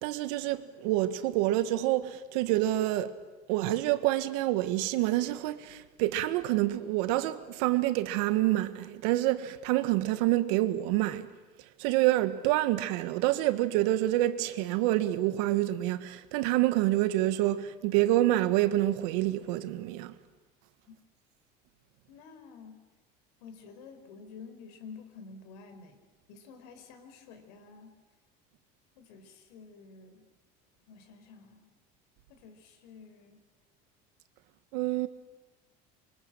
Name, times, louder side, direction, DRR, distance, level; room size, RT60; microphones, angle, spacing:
voice 1, 0.0-3.2 3.5-11.3 11.8-20.1 34.7-35.1, right 15 dB, 80° right, 1.6 m, -27 dB
voice 2, 22.1-22.8 23.4-27.9 29.0-30.3 30.9-31.7 32.3-33.4, left 5 dB, 90° left, 4.6 m, -50 dB
27.0 x 24.5 x 7.6 m
cardioid pair, 140°, 20 cm